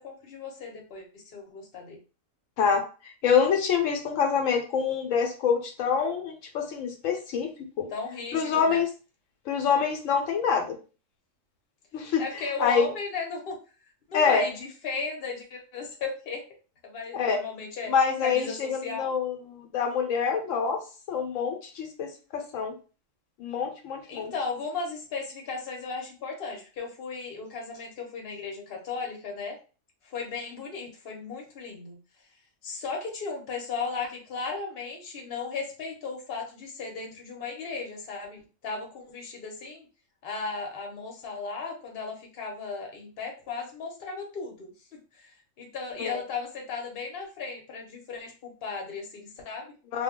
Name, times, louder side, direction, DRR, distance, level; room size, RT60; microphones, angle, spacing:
voice 1, 0.0-2.0 7.9-8.8 12.2-13.6 14.1-16.4 16.8-17.9 18.2-19.1 24.1-29.6 30.0-32.0 32.6-39.9 40.2-49.7, left 4 dB, 55° left, 1 dB, 0.9 m, -36 dB
voice 2, 3.2-7.5 7.8-7.9 8.3-8.9 9.5-10.8 11.9-12.9 14.1-14.4 17.1-17.4 17.9-19.3 19.7-20.8 21.1-22.7 23.4-24.3 46.0-46.2 49.9-50.0, left 6 dB, 80° left, 3 dB, 0.9 m, -26 dB
2.2 x 2.2 x 3.6 m, 0.35 s
omnidirectional pair, 1.3 m